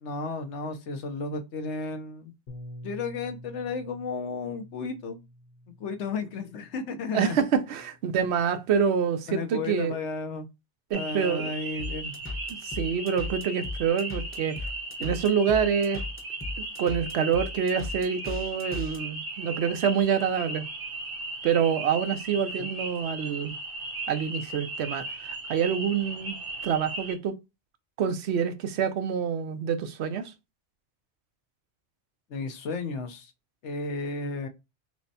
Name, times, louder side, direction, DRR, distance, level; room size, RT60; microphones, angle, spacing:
voice 1, 0.0-2.3 2.8-5.2 5.8-7.4 9.3-10.5 10.9-12.1 22.6-22.7 32.3-33.3 33.6-34.5, left 4 dB, 85° left, 1.1 m, -33 dB
Bass guitar, 2.5-7.0 7.7-8.7, equal, 50° left, 0.8 m, -47 dB
voice 2, 7.1-9.9 10.9-11.5 12.6-14.6 15.0-16.0 16.6-20.6 21.4-23.6 24.1-26.4 26.6-27.4 28.0-30.3, right 7 dB, 75° right, 0.8 m, -26 dB
sound 1, 10.9-27.1, right 2 dB, 55° right, 1.1 m, -37 dB
sound 2, 11.8-19.0, left 2 dB, 15° left, 0.8 m, -36 dB
6.0 x 2.1 x 2.7 m
omnidirectional pair, 1.2 m